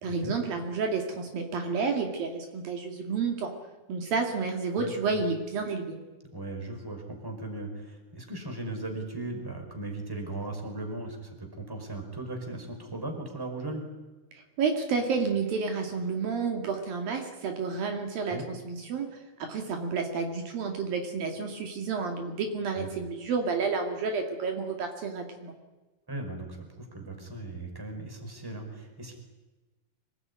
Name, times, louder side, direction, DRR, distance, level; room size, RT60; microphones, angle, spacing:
voice 1, 0.0-3.5 3.9-5.9 14.6-19.1 19.4-25.5, right 4 dB, 65° right, 3 dB, 4.0 m, -30 dB
voice 2, 4.8-5.2 6.3-13.9 18.3-18.5 22.7-22.9 26.1-26.6 26.9-29.2, right 2 dB, 5° right, 3 dB, 4.6 m, -37 dB
25.5 x 19.5 x 9.7 m, 1.2 s
omnidirectional pair, 4.5 m